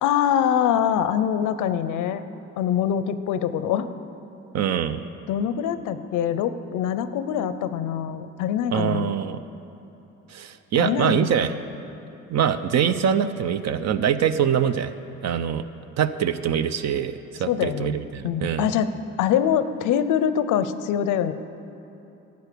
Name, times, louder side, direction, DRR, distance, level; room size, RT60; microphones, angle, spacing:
voice 1, 0.0-2.2 2.6-3.9 5.3-9.1 10.8-11.5 17.5-18.0 18.2-18.9 19.2-21.3, left 9 dB, 85° left, 12 dB, 0.6 m, -24 dB
voice 2, 4.5-5.0 8.7-9.4 10.3-11.5 12.3-14.9 15.2-15.6 16.0-18.7, right 8 dB, 60° right, 11 dB, 0.6 m, -24 dB
12.0 x 8.1 x 6.7 m, 3.0 s
cardioid pair, 90°, 30 cm